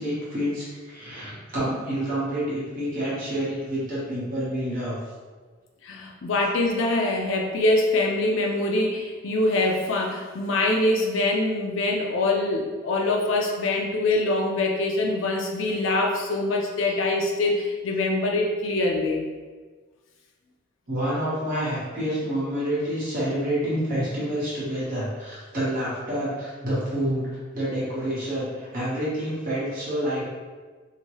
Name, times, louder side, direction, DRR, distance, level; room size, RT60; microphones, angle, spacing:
voice 1, 0.0-4.9 20.9-30.3, equal, 45° right, -9 dB, 1.2 m, -28 dB
voice 2, 5.8-19.2, left 2 dB, 90° left, 0 dB, 0.5 m, -24 dB
2.8 x 2.2 x 3.0 m, 1.4 s
head